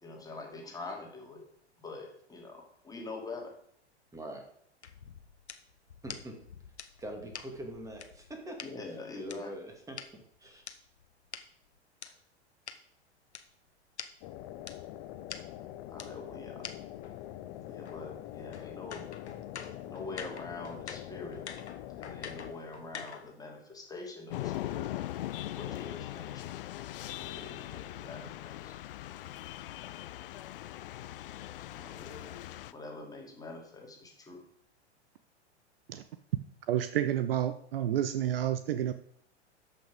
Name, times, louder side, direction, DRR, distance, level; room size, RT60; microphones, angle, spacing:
voice 1, 0.0-1.4 1.8-3.5 8.6-9.7 12.0-12.1 15.9-16.6 17.6-19.0 19.8-21.4 22.0-25.0 25.5-26.5 27.1-28.7 31.7-32.4 32.7-34.4, left 3 dB, 10° left, 0 dB, 2.5 m, -44 dB
voice 2, 4.1-4.4 6.0-6.3 7.0-8.6 9.1-10.0 10.4-10.6, right 1 dB, 10° right, 3 dB, 2.3 m, -43 dB
sound 1, 4.8-8.7 9.3-12.1 12.7-12.8 13.3-13.4 13.7-13.8 14.0-14.1 14.7-14.8 15.3-15.4 16.0-16.1 16.6-16.7 17.0-23.4, left 6 dB, 75° left, 1.1 m, -46 dB
sound 2, 14.2-22.5, left 13 dB, 35° left, 1.0 m, -44 dB
sound 3, 24.3-32.7, left 14 dB, 50° left, 0.6 m, -40 dB
voice 3, 36.7-38.9, right 11 dB, 55° right, 12 dB, 0.6 m, -30 dB
13.0 x 5.7 x 5.1 m, 0.69 s
figure-of-eight pair, 95°, 34 cm